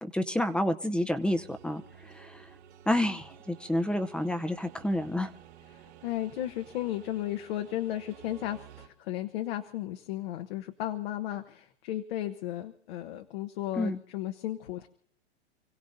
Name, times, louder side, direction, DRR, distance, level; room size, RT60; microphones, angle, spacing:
voice 1, 0.0-2.5 2.9-5.3 13.7-14.0, left 1 dB, 5° left, 9 dB, 0.7 m, -29 dB
sound 1, 1.2-8.9, right 9 dB, 80° right, 3.0 m, -53 dB
voice 2, 5.7-14.9, left 13 dB, 60° left, 7 dB, 1.2 m, -35 dB
29.0 x 16.5 x 2.7 m, 0.66 s
hypercardioid pair, 135°, 33 cm